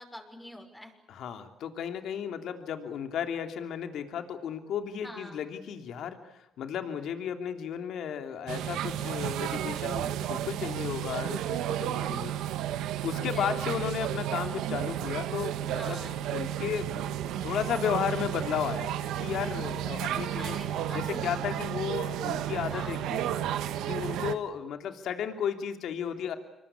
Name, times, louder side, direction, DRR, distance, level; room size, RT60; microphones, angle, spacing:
voice 1, 0.0-0.9 5.0-5.4 13.3-13.5 15.8-16.2 20.4-21.2 22.7-23.1, left 1 dB, 5° left, 4 dB, 6.1 m, -44 dB
voice 2, 1.1-12.3 13.0-17.1 17.4-20.6 20.9-23.3 23.9-26.4, left 8 dB, 75° left, 6 dB, 3.0 m, -34 dB
sound 1, 8.5-24.3, right 11 dB, 90° right, 1.6 m, -32 dB
26.5 x 23.5 x 8.6 m, 0.93 s
cardioid pair, 90°, 0 cm